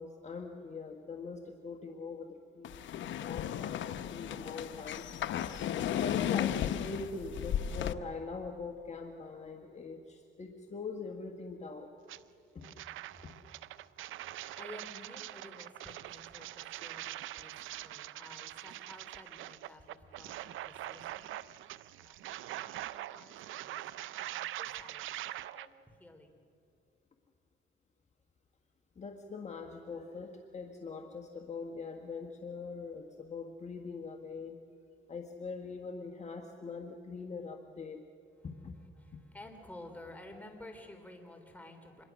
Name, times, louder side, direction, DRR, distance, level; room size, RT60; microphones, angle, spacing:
voice 1, 0.0-2.9 3.2-3.8 4.1-5.1 5.8-12.0 12.5-12.7 13.2-13.3 28.9-34.6 35.1-38.1 38.4-38.8, left 4 dB, 35° left, 3 dB, 1.6 m, -42 dB
sound 1, 2.6-7.9, left 10 dB, 70° left, 0.8 m, -34 dB
sound 2, 12.1-12.2 12.6-25.7, right 14 dB, 80° right, 0.6 m, -43 dB
voice 2, 14.1-21.4 22.0-25.7 26.0-26.4 38.4-38.5 39.0-42.0, left 1 dB, 10° left, 4 dB, 3.6 m, -53 dB
26.0 x 21.5 x 6.3 m, 2.6 s
cardioid pair, 90°, 20 cm